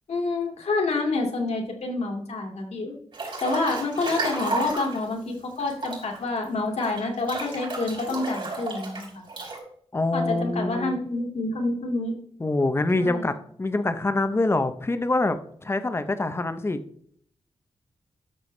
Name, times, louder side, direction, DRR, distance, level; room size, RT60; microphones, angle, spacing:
voice 1, 0.1-2.9 3.4-9.3 10.1-12.1 13.0-13.3, left 3 dB, 75° left, 1 dB, 2.3 m, -28 dB
Breathing / Bathtub (filling or washing) / Splash splatter, 3.1-5.0 5.6-9.6, right 3 dB, 50° right, 4.6 m, -33 dB
voice 2, 9.9-11.0 12.4-16.8, left 2 dB, 20° left, 10 dB, 0.6 m, -25 dB
13.0 x 6.7 x 3.2 m, 0.63 s
wide cardioid pair, 165°, 11 cm